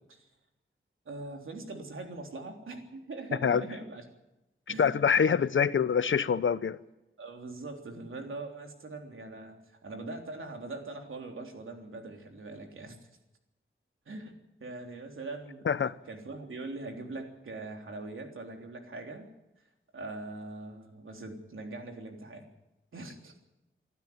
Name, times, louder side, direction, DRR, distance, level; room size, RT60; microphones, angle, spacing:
voice 1, 1.1-4.0 4.7-5.4 7.2-13.0 14.1-14.3 14.6-15.7 16.1-19.3 19.6-19.7 19.9-22.5 22.9-23.3, right 2 dB, 80° right, 3 dB, 3.5 m, -42 dB
voice 2, 4.8-6.8 15.7-15.9, left 6 dB, 70° left, 15 dB, 0.9 m, -25 dB
25.5 x 12.5 x 9.4 m, 0.96 s
wide cardioid pair, 105°, 21 cm